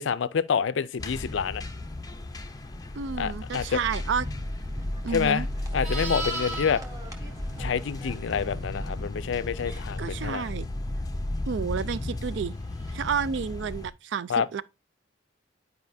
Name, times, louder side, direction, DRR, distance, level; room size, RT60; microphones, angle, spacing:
voice 1, 0.0-1.6 3.2-3.8 5.1-5.4 5.7-6.8 7.6-10.5 14.3-14.5, left 6 dB, 70° left, 0.4 m, -27 dB
sound 1, 1.0-13.9, left 1 dB, 20° left, 0.5 m, -35 dB
voice 2, 2.9-4.3 5.0-5.5 9.7-10.7 11.5-12.5 12.9-14.6, right 6 dB, 65° right, 0.4 m, -31 dB
sound 2, 4.0-9.0, equal, 20° right, 1.1 m, -38 dB
Livestock farm animals working animals, 5.7-8.4 12.7-13.0, right 1 dB, 40° right, 1.6 m, -37 dB
10.5 x 4.8 x 2.6 m
head